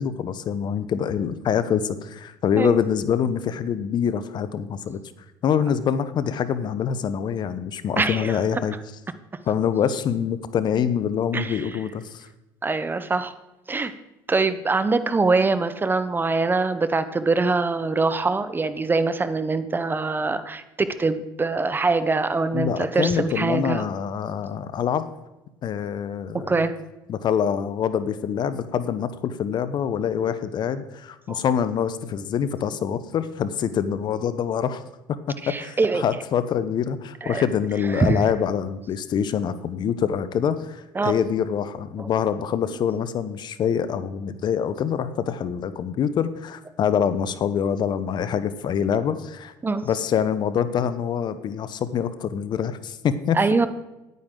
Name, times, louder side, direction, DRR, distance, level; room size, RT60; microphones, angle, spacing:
voice 1, 0.0-5.0 5.4-8.8 9.5-12.3 22.5-25.1 25.6-26.7 27.1-34.8 35.3-49.5 49.8-53.4, left 8 dB, 50° left, 13 dB, 0.8 m, -25 dB
voice 2, 8.0-8.4 11.3-11.7 12.6-13.3 13.7-13.9 14.3-23.8 26.3-26.8 31.3-31.4 35.4-36.0 37.2-37.4 37.9-38.2 40.9-41.1 42.0-42.1 49.6-49.9 53.3-53.7, right 3 dB, 20° right, 12 dB, 0.8 m, -23 dB
10.5 x 9.3 x 3.8 m, 0.98 s
supercardioid pair, 85°, 10 cm